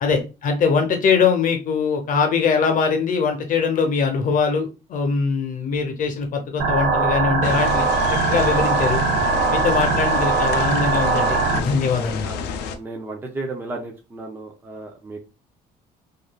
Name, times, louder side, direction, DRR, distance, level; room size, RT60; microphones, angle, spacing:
voice 1, 0.0-7.8 8.1-9.0 9.5-12.4, left 5 dB, 55° left, 5 dB, 0.8 m, -22 dB
sound 1, 6.6-11.6, right 4 dB, 80° right, 0.5 m, -21 dB
sound 2, 7.4-12.8, left 6 dB, 85° left, 0.4 m, -30 dB
voice 2, 12.2-15.2, right 2 dB, 15° right, 1 dB, 0.6 m, -34 dB
3.1 x 2.6 x 2.2 m, 0.29 s
cardioid pair, 110°, 17 cm